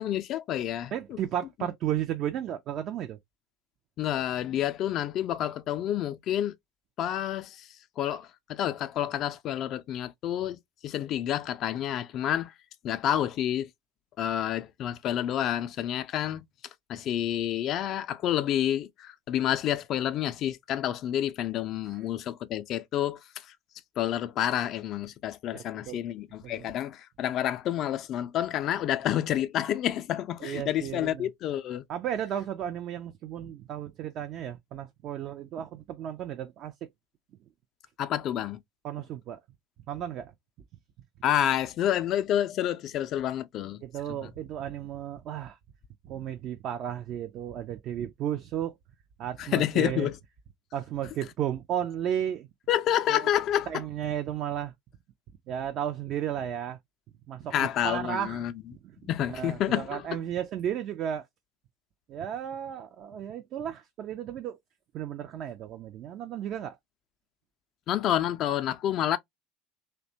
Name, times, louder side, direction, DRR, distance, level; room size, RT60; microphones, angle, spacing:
voice 1, 0.0-0.9 4.0-6.5 7.0-7.7 8.0-12.5 12.8-13.7 14.2-16.4 16.9-23.2 24.0-31.8 38.0-38.6 41.2-43.8 44.1-44.3 49.4-50.2 52.7-53.8 57.5-58.5 59.1-60.1 67.9-69.2, left 11 dB, 50° left, 0.3 m, -29 dB
voice 2, 0.9-3.2 25.5-26.0 26.4-26.7 30.4-31.3 31.9-36.7 38.8-39.4 39.9-40.3 43.8-45.6 46.1-48.8 49.2-50.1 50.7-52.5 53.1-53.2 53.7-54.7 55.5-56.8 57.3-57.5 57.8-58.4 58.8-61.3 62.1-64.6 64.9-66.8, right 10 dB, 50° right, 0.3 m, -34 dB
2.7 x 2.1 x 2.6 m
figure-of-eight pair, 70°, 0 cm